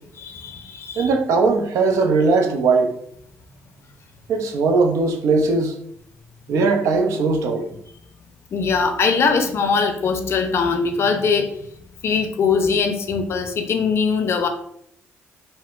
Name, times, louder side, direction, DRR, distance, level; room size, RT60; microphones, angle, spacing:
voice 1, 0.2-1.1 8.5-11.5 12.0-14.5, left 5 dB, 55° left, 6 dB, 0.5 m, -21 dB
voice 2, 1.0-3.0 4.3-5.8 6.5-7.7, right 4 dB, 75° right, 4 dB, 0.5 m, -19 dB
3.6 x 2.0 x 2.4 m, 0.69 s
supercardioid pair, 60°, 5 cm